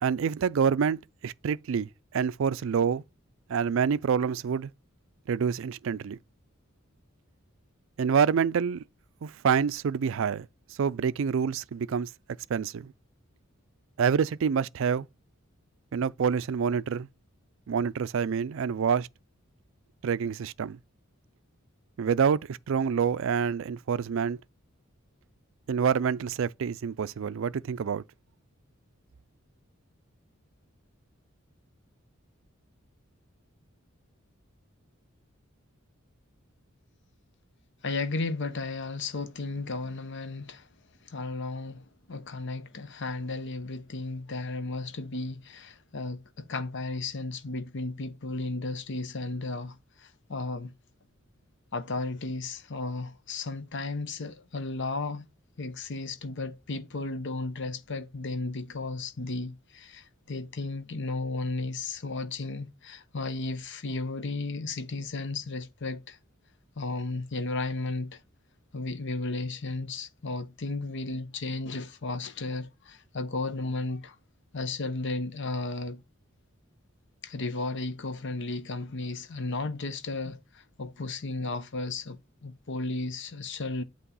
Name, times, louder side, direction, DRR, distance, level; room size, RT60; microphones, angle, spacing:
voice 1, 0.0-3.0 3.5-4.7 5.3-6.2 8.0-8.8 9.2-10.5 10.8-12.1 12.5-12.9 14.0-15.1 15.9-17.1 17.7-19.1 20.0-20.8 22.0-24.4 25.7-28.0, right 6 dB, 65° right, 0.4 m, -27 dB
voice 2, 37.8-40.7 41.0-50.7 51.7-55.3 55.6-66.2 66.8-68.2 68.7-74.1 74.5-76.0 77.2-83.8, left 3 dB, 60° left, 0.8 m, -34 dB
8.4 x 3.0 x 5.5 m
head